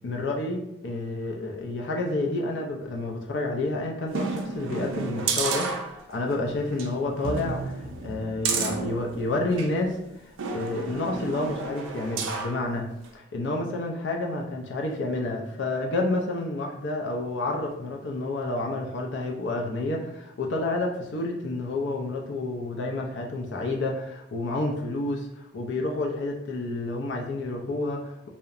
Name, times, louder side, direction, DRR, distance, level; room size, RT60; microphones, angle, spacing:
voice 1, 0.0-10.0 10.5-12.8 13.1-28.3, left 2 dB, 65° left, 1 dB, 0.4 m, -29 dB
sound 1, 4.1-6.3 6.7-6.9 7.2-9.7 10.4-12.6 13.0-13.1, right 4 dB, 85° right, 0.4 m, -31 dB
2.8 x 2.1 x 2.4 m, 0.84 s
head